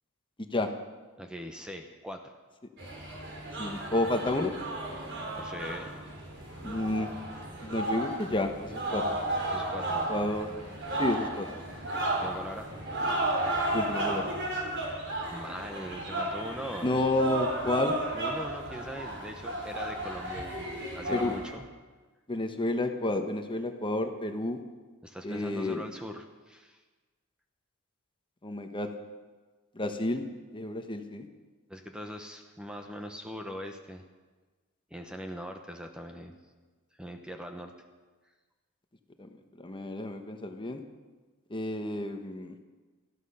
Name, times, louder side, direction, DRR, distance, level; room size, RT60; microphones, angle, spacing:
voice 1, 1.2-2.3 5.4-5.9 9.5-10.1 12.2-12.7 15.3-17.0 18.1-21.7 25.0-26.8 31.7-34.0 34.9-36.4 37.0-37.7, equal, 5° right, 4 dB, 1.0 m, -41 dB
sound 1, 2.8-21.5, right 1 dB, 55° right, 4.3 m, -34 dB
voice 2, 3.6-4.5 6.6-7.1 7.6-9.0 10.1-10.5 11.0-11.5 13.7-14.3 16.8-17.9 21.1-21.4 22.3-24.6 25.2-25.8 28.4-28.9 29.8-30.2 30.5-31.3 39.6-40.8 41.5-42.5, left 2 dB, 25° left, 6 dB, 1.1 m, -30 dB
18.5 x 13.5 x 5.6 m, 1.3 s
head